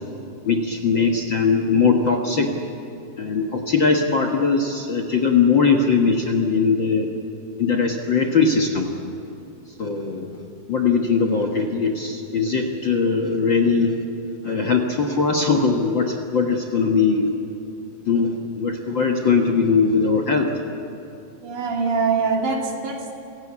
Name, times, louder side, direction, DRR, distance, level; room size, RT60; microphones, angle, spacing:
voice 1, 0.4-2.5 3.2-7.1 7.6-8.9 9.8-10.4 10.7-14.0 14.4-17.3 18.0-20.5, left 5 dB, 50° left, 2 dB, 1.6 m, -20 dB
voice 2, 21.4-23.1, right 4 dB, 70° right, 1 dB, 4.0 m, -23 dB
28.5 x 17.0 x 8.5 m, 2.8 s
omnidirectional pair, 3.7 m